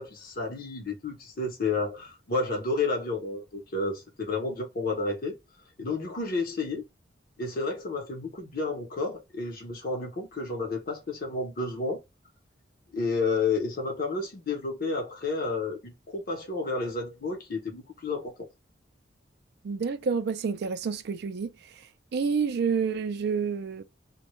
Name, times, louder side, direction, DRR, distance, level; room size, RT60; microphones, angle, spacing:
voice 1, 0.0-5.3 5.8-6.8 7.4-12.0 12.9-18.5, left 3 dB, 50° left, 0.7 m, -31 dB
voice 2, 19.6-21.5 22.1-23.8, right 5 dB, 60° right, 0.4 m, -28 dB
2.1 x 2.1 x 3.0 m
head